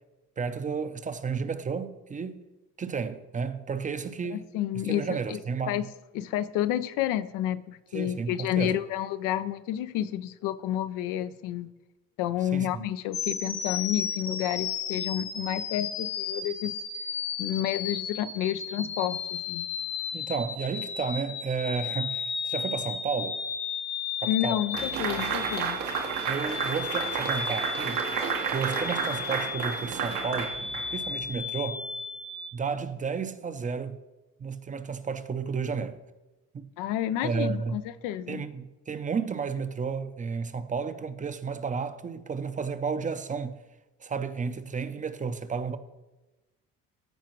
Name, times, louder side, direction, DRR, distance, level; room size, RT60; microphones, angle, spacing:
voice 1, 0.4-2.4 2.8-4.5 4.9-5.9 7.9-8.8 12.4-12.9 20.1-23.4 24.2-24.6 26.3-28.0 28.5-31.8 32.5-34.0 34.4-36.0 36.5-36.6 37.2-37.8 38.3-43.6 44.0-45.8, right 5 dB, 25° right, 0.5 m, -32 dB
voice 2, 4.3-5.4 5.7-5.8 6.1-11.7 12.2-16.7 17.4-19.7 24.3-25.8 36.8-38.4, left 12 dB, 80° left, 0.5 m, -30 dB
sound 1, 13.1-32.5, left 6 dB, 65° left, 1.2 m, -34 dB
sound 2, 24.7-31.2, right 6 dB, 85° right, 1.3 m, -31 dB
14.5 x 4.8 x 3.0 m
supercardioid pair, 80°, 31 cm